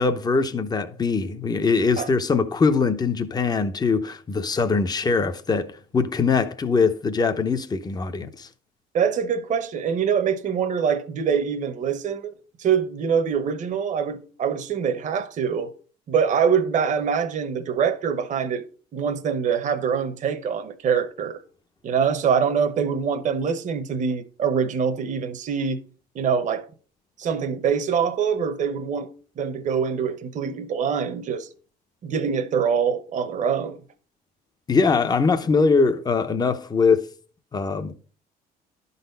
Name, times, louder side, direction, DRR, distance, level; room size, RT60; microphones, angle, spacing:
voice 1, 0.0-8.5 34.7-37.1 37.5-37.9, left 4 dB, 25° left, 0.8 m, -22 dB
voice 2, 8.9-12.3 12.6-15.7 16.1-18.6 18.9-21.4 21.8-25.8 26.1-26.6 27.2-29.1 29.4-31.5 32.0-33.8, right 7 dB, 45° right, 0.9 m, -24 dB
11.0 x 4.1 x 5.4 m
cardioid pair, 110°, 17 cm